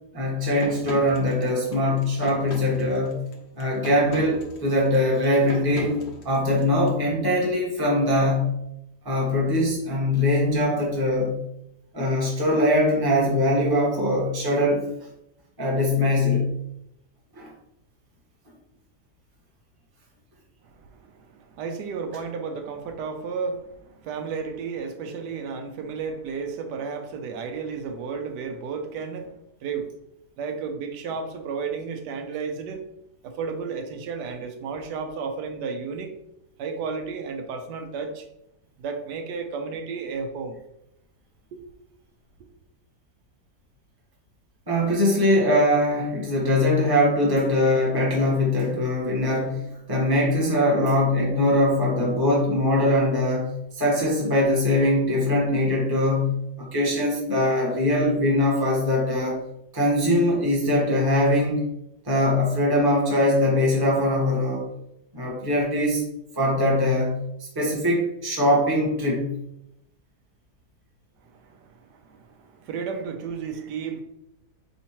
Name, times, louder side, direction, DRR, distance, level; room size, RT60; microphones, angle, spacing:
voice 1, 0.1-3.2 3.6-6.0 6.2-8.6 9.0-11.4 11.9-14.8 15.6-16.5 17.4-17.5 44.7-59.4 59.7-61.6 62.0-64.7 65.1-66.0 66.4-67.2 67.5-69.3, left 1 dB, 15° right, -3 dB, 0.9 m, -22 dB
sound 1, 0.6-6.9, left 2 dB, 55° left, 0.8 m, -39 dB
voice 2, 20.6-29.3 29.6-29.9 30.4-32.8 33.2-36.1 36.6-38.2 38.8-40.6 41.5-41.6 71.2-74.0, right 5 dB, 85° right, 5 dB, 1.2 m, -33 dB
4.3 x 3.6 x 2.9 m, 0.82 s
omnidirectional pair, 1.7 m